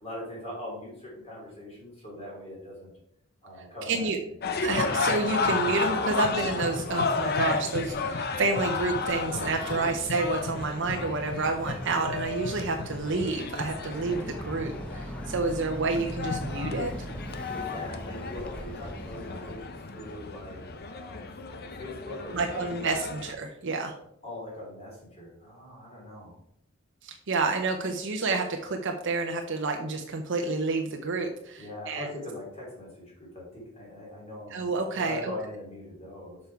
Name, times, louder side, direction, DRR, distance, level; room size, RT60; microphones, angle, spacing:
voice 1, 0.0-2.9 3.4-4.3 17.5-21.2 21.5-22.6 22.8-23.1 24.2-26.4 31.6-34.5 34.9-36.4, left 1 dB, 30° left, -4 dB, 3.1 m, -41 dB
voice 2, 3.9-4.2 4.6-16.9 22.3-24.0 27.0-32.2 34.5-35.3, right 3 dB, 60° right, 3 dB, 0.7 m, -29 dB
sound 1, 4.4-23.3, left 4 dB, 50° left, 0.7 m, -33 dB
sound 2, 7.9-20.2 20.6-20.7, equal, 85° left, 2.2 m, -49 dB
Boat Water vehicle, 8.8-19.6, equal, 5° left, 0.7 m, -42 dB
6.8 x 5.4 x 4.6 m, 0.74 s
head